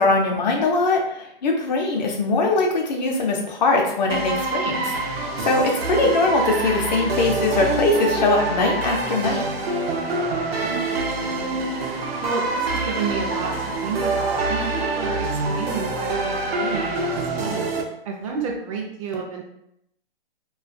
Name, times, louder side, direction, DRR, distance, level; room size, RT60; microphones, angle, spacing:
voice 1, 0.0-4.9 5.4-9.5, left 3 dB, 50° left, 0 dB, 0.6 m, -21 dB
sound 1, 4.1-17.8, right 3 dB, 85° right, 0.6 m, -25 dB
voice 2, 5.9-6.2 10.6-11.7 12.2-13.5 13.8-17.7 18.0-19.4, right 5 dB, 35° right, 0 dB, 0.4 m, -31 dB
2.3 x 2.3 x 2.5 m, 0.77 s
hypercardioid pair, 140°, 29 cm